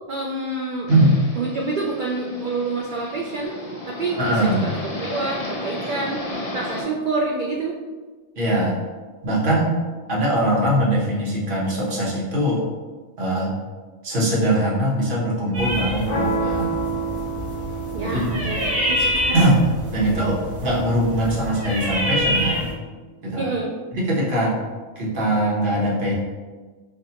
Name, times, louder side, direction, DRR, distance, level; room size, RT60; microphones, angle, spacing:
voice 1, 0.1-0.9 1.3-3.6 3.9-6.2 6.5-7.8 17.9-19.4 23.4-23.8, right 3 dB, 85° right, -2 dB, 0.4 m, -27 dB
sound 1, 0.9-6.8, left 1 dB, 35° left, 0.6 m, -33 dB
voice 2, 4.2-4.8 8.4-8.8 9.2-9.7 10.1-12.6 13.2-13.5 14.0-16.8 18.0-18.7 19.3-19.6 19.9-22.6 23.2-23.5 23.9-24.6 25.0-26.1, right 1 dB, 45° right, -4 dB, 1.1 m, -21 dB
sound 2, 15.5-22.7, left 1 dB, 15° right, 0.8 m, -27 dB
sound 3, 16.0-22.1, right 4 dB, 70° left, 1.1 m, -30 dB
5.5 x 2.3 x 2.8 m, 1.4 s
omnidirectional pair, 1.4 m